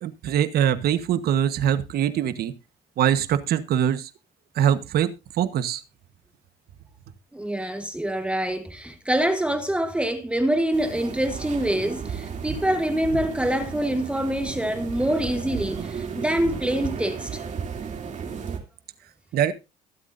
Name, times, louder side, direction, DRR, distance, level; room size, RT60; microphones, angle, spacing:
voice 1, 0.0-2.5 3.0-4.1 4.6-5.1 5.4-5.8 19.3-19.5, right 10 dB, 65° right, 1.3 m, -23 dB
voice 2, 7.3-17.4, right 1 dB, 5° right, 1.2 m, -25 dB
sound 1, 10.7-18.6, right 6 dB, 45° right, 2.9 m, -34 dB
22.0 x 8.1 x 2.6 m
cardioid pair, 110°, 17 cm